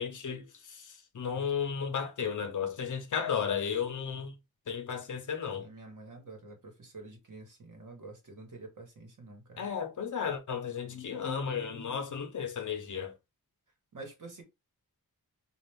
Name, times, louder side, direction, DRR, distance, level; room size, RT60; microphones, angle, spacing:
voice 1, 0.0-4.4 4.7-5.7 9.6-13.1, left 7 dB, 55° left, 0.8 m, -34 dB
voice 2, 5.5-9.6 13.9-14.4, right 3 dB, 55° right, 1.4 m, -48 dB
4.1 x 2.5 x 3.4 m
wide cardioid pair, 165°, 36 cm